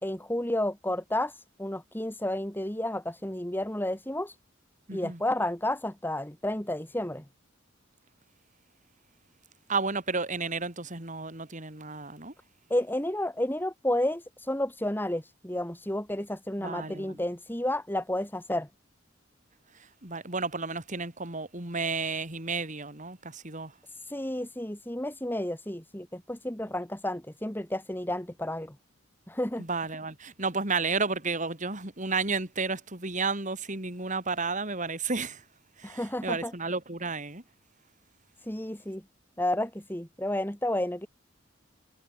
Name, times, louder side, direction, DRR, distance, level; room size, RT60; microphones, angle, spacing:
voice 1, 0.0-4.4 4.9-7.2 12.7-18.7 24.0-28.8 29.3-29.6 35.8-36.5 38.4-39.0 39.4-41.1, left 1 dB, 10° left, 2.4 m, -31 dB
voice 2, 4.9-5.2 9.7-12.3 16.6-17.2 20.0-23.7 29.6-35.4 35.8-37.4, right 4 dB, 40° right, 4.0 m, -32 dB
head